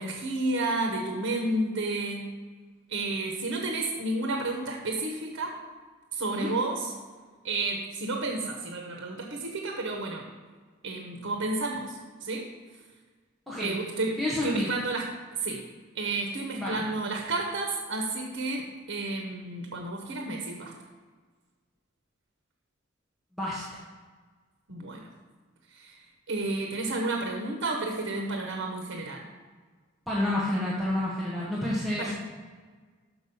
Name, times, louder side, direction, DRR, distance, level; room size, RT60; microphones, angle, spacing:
voice 1, 0.0-2.3 2.9-5.6 6.1-6.9 7.4-10.3 10.8-12.5 13.6-15.6 15.9-20.7 24.7-25.1 25.7-29.3 32.0-32.1, right 2 dB, 90° right, 2 dB, 1.0 m, -31 dB
voice 2, 13.5-13.8 14.2-14.7 16.6-16.8 23.4-23.8 30.1-32.1, left 1 dB, ahead, -8 dB, 1.0 m, -29 dB
6.1 x 6.0 x 5.4 m, 1.5 s
head